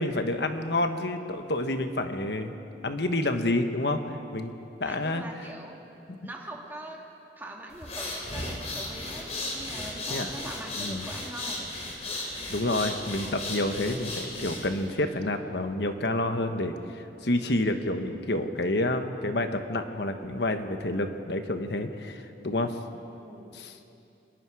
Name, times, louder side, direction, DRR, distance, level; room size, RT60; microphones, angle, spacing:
voice 1, 0.0-2.5 2.8-4.5 4.8-5.2 6.1-6.2 10.1-10.3 10.8-11.1 12.5-22.8 23.5-23.7, left 1 dB, 70° left, 7 dB, 1.3 m, -29 dB
voice 2, 4.9-5.8 6.2-7.0 7.4-11.7 23.2-23.6, right 1 dB, 10° right, -1 dB, 2.2 m, -42 dB
sound 1, 7.7-14.9, left 2 dB, 35° left, 3.5 m, -35 dB
26.0 x 21.5 x 4.9 m, 2.8 s
head